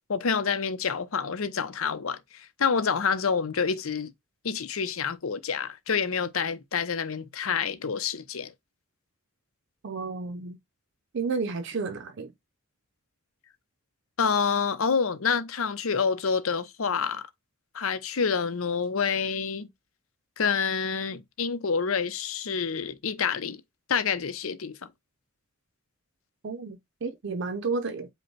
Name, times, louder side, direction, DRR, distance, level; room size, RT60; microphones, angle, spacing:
voice 1, 0.1-4.1 4.4-8.5 14.2-17.2 17.7-19.7 20.4-23.6 23.9-24.9, left 6 dB, 85° left, 0.7 m, -28 dB
voice 2, 9.8-10.6 11.1-12.3 26.4-28.1, right 4 dB, 60° right, 0.5 m, -31 dB
5.2 x 2.2 x 4.5 m
head